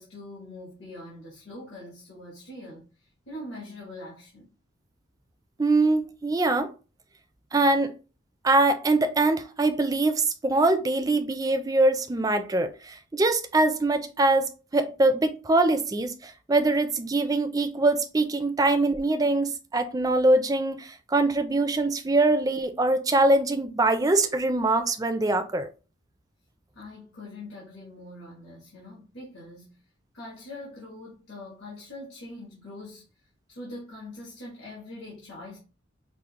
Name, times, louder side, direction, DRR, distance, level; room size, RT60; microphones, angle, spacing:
voice 1, 0.0-4.5 26.7-29.8 30.1-33.1 33.5-35.6, left 1 dB, 75° left, 1.3 m, -43 dB
voice 2, 5.6-6.7 7.5-7.9 8.4-25.7, right 2 dB, 20° right, 0.4 m, -23 dB
4.9 x 2.0 x 2.9 m
head